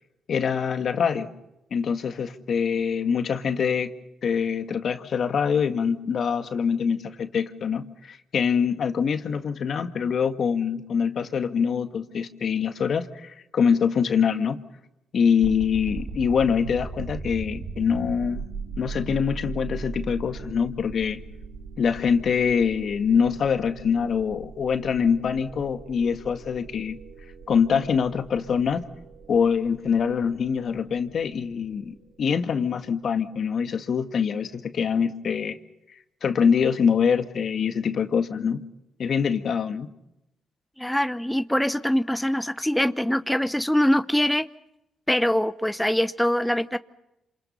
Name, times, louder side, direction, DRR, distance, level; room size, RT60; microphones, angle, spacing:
voice 1, 0.3-1.3 1.7-3.9 4.2-14.6 15.1-18.5 18.8-21.2 21.8-27.0 27.5-28.8 29.3-35.6 36.2-38.6 39.0-39.9, left 6 dB, 60° left, 8 dB, 1.9 m, -24 dB
sound 1, 15.4-32.3, right 4 dB, 70° right, 2.7 m, -39 dB
voice 2, 40.8-44.4 45.1-46.8, equal, 5° left, 12 dB, 0.9 m, -23 dB
27.5 x 27.5 x 5.7 m, 0.89 s
supercardioid pair, 55°, 0 cm